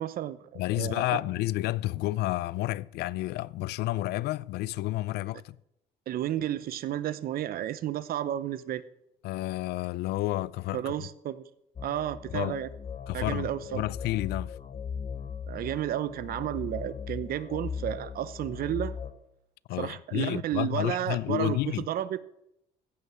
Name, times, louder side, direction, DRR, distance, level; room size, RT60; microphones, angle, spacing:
voice 1, 0.0-1.2 6.1-8.8 10.7-11.4 11.8-12.7 13.1-13.8 15.5-18.9 19.8-22.2, right 12 dB, 60° right, 0.8 m, -32 dB
voice 2, 0.5-5.6 9.2-11.1 12.3-12.6 13.1-14.6 19.7-21.9, left 17 dB, 75° left, 0.4 m, -30 dB
sound 1, 11.8-19.1, left 6 dB, 35° left, 1.0 m, -38 dB
15.0 x 5.5 x 7.5 m
cardioid pair, 110°, 17 cm